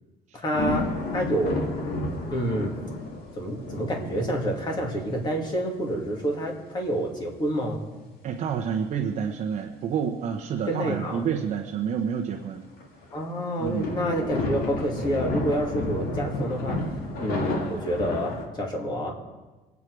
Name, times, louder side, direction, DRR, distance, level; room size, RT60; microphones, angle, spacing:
voice 1, 0.4-0.9 1.1-1.6 2.3-2.7 3.4-7.8 10.7-11.3 13.1-16.8 17.2-19.1, equal, 25° left, 0 dB, 2.4 m, -28 dB
sound 1, 0.5-5.2 6.3-6.4 7.2-7.4 8.9-9.0 12.8-13.2 13.6-18.4, left 2 dB, 60° left, 2.5 m, -31 dB
voice 2, 8.2-12.6 13.6-13.9, right 7 dB, 45° right, 1 dB, 1.0 m, -29 dB
23.5 x 8.4 x 4.8 m, 1.2 s
cardioid pair, 160°, 17 cm